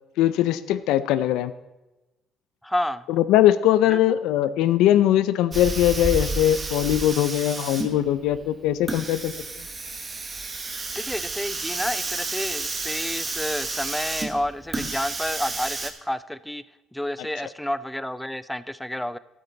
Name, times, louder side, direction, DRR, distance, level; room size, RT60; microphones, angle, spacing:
voice 1, 0.2-1.5 3.2-9.3, left 12 dB, 85° left, 14 dB, 0.5 m, -21 dB
voice 2, 2.6-3.0 3.9-4.0 10.9-16.6 16.9-19.2, left 1 dB, 5° left, 16 dB, 0.3 m, -30 dB
Hiss, 5.5-15.9, right 3 dB, 20° right, 1.0 m, -31 dB
12.0 x 8.8 x 4.0 m, 1.0 s
cardioid pair, 140°, 0 cm